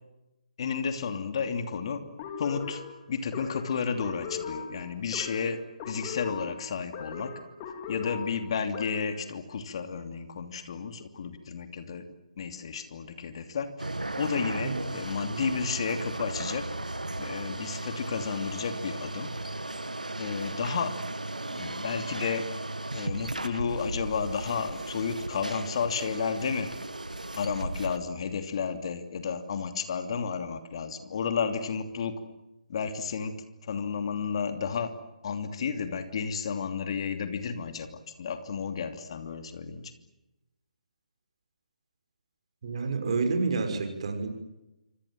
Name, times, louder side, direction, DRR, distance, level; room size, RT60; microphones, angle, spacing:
voice 1, 0.6-2.0 2.4-2.8 3.1-5.6 5.9-7.3 7.9-12.0 12.4-16.6 17.2-19.3 20.2-20.9 21.5-22.5 22.9-26.7 27.4-32.2 32.7-33.4 33.6-34.9 35.2-39.9, left 6 dB, 45° left, 8 dB, 2.8 m, -32 dB
sound 1, 2.2-9.2, left 6 dB, 30° left, 4.2 m, -39 dB
sound 2, 13.8-28.0, right 2 dB, 85° right, 1.8 m, -36 dB
voice 2, 42.6-44.3, right 4 dB, 50° right, 6 dB, 5.9 m, -29 dB
27.0 x 26.0 x 7.7 m, 0.96 s
figure-of-eight pair, 140°, 4 cm